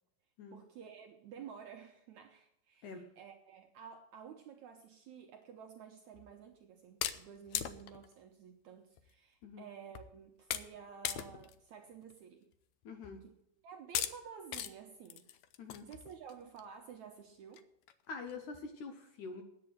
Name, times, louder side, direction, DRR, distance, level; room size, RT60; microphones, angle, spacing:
voice 1, 0.5-12.5 13.2-13.3 13.6-15.3 15.8-17.7, right 7 dB, 70° right, 1.9 m, -52 dB
sound 1, 6.2-6.3 7.0-8.1 9.0-9.1 9.4-9.5 10.0-10.2 10.5-10.8 11.0-11.6 12.0-12.1 13.0-13.2 14.0-14.2 14.5-14.7 15.1-16.6 17.1-17.2 17.5-17.6 17.9-18.0 18.3-18.6, left 11 dB, 90° left, 1.6 m, -39 dB
voice 2, 12.9-13.2 15.6-15.8 18.1-19.4, left 4 dB, 70° left, 2.2 m, -45 dB
9.8 x 8.8 x 7.8 m
omnidirectional pair, 4.3 m